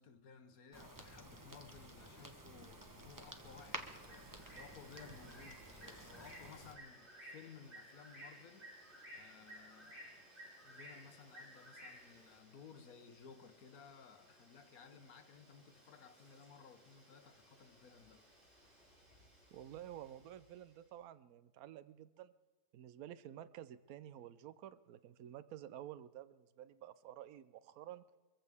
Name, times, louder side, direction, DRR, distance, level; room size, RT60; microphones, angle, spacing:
voice 1, 0.0-10.3 10.6-18.2, left 6 dB, 60° left, 1.3 m, -58 dB
sound 1, 0.7-6.8, right 1 dB, 15° right, 0.8 m, -52 dB
Bird, 2.2-20.7, equal, 45° right, 6.2 m, -59 dB
voice 2, 19.5-22.3 22.7-28.1, right 11 dB, 65° right, 1.0 m, -51 dB
24.5 x 15.0 x 3.5 m
omnidirectional pair, 1.8 m